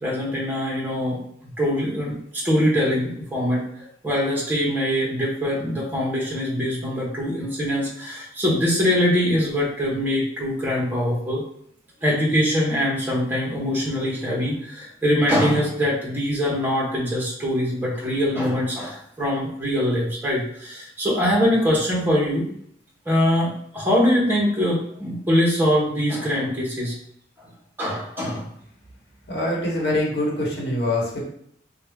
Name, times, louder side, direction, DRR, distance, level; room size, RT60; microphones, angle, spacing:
voice 1, 0.0-11.4 12.0-22.5 23.1-26.9 27.8-28.5, equal, 10° right, -4 dB, 0.9 m, -23 dB
voice 2, 29.3-31.2, left 1 dB, 60° left, -3 dB, 1.2 m, -24 dB
4.1 x 2.3 x 3.5 m, 0.68 s
head